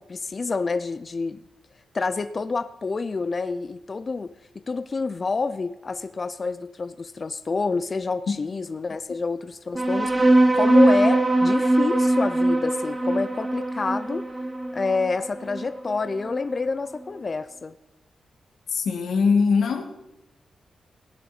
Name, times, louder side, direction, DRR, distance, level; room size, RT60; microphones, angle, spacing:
voice 1, 0.0-1.4 1.9-14.3 14.7-17.8, left 4 dB, 35° left, 12 dB, 0.5 m, -28 dB
sound 1, 9.7-16.7, right 2 dB, 20° right, 1.7 m, -21 dB
voice 2, 18.7-19.8, left 5 dB, 90° left, 5 dB, 1.7 m, -21 dB
17.0 x 10.0 x 4.1 m, 0.95 s
wide cardioid pair, 115°, 0 cm